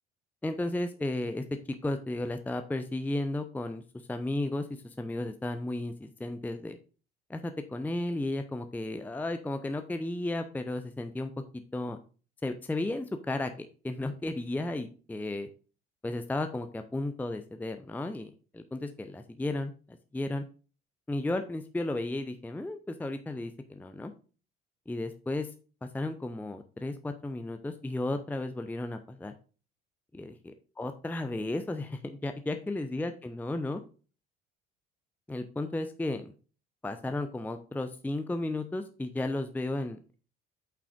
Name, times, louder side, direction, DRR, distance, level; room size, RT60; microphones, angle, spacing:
voice 1, 0.4-1.4 1.8-3.8 4.1-6.8 7.3-11.3 11.7-12.0 12.4-15.5 16.0-20.4 21.1-24.1 24.9-25.5 25.8-29.3 30.1-33.8 35.3-36.3 36.8-40.2, left 2 dB, 5° left, 8 dB, 0.6 m, -34 dB
8.1 x 5.9 x 2.5 m, 0.36 s
figure-of-eight pair, 55°, 30 cm